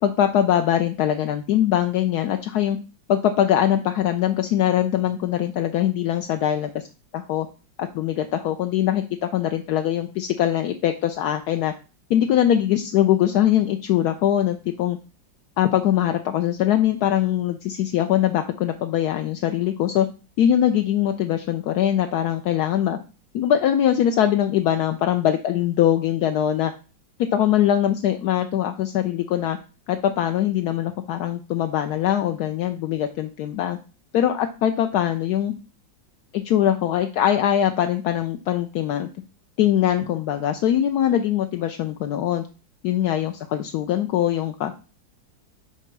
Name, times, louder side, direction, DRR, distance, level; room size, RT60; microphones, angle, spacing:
voice 1, 0.0-2.8 3.1-6.9 7.1-7.5 7.8-11.7 12.1-15.0 15.6-20.1 20.4-23.0 23.3-26.7 27.2-29.6 29.9-33.8 34.1-35.5 36.3-39.1 39.6-42.5 42.8-44.7, left 11 dB, 70° left, 7 dB, 1.0 m, -22 dB
9.0 x 3.0 x 5.9 m, 0.34 s
omnidirectional pair, 2.1 m